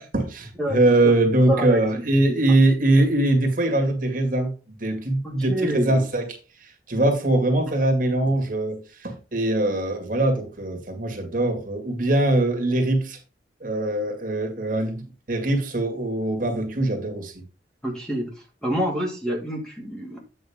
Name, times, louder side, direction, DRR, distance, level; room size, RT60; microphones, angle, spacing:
voice 1, 0.0-4.5 4.8-6.3 6.6-13.2 13.6-17.3, right 2 dB, 50° right, 2.1 m, -22 dB
voice 2, 0.6-1.1 1.5-2.0 5.2-6.0 7.7-7.8 17.8-20.2, equal, 5° left, 2.0 m, -27 dB
8.8 x 5.9 x 3.6 m
head